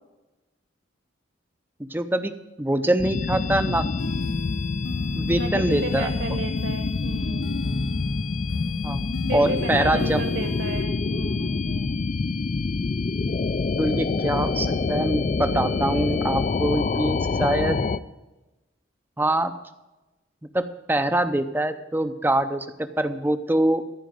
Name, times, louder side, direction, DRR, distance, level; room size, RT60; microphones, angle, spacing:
voice 1, 1.9-2.3 2.6-3.9 5.1-6.1 8.8-10.2 13.8-17.8 19.2-19.5 20.5-23.8, right 1 dB, 10° right, 10 dB, 0.6 m, -24 dB
sound 1, 3.0-18.0, left 4 dB, 40° left, 0.4 m, -26 dB
sound 2, 4.0-10.8, left 3 dB, 70° left, 0.7 m, -36 dB
voice 2, 5.3-7.7 9.3-11.9, right 2 dB, 70° right, 6 dB, 2.0 m, -33 dB
14.5 x 5.1 x 9.2 m, 1.1 s
head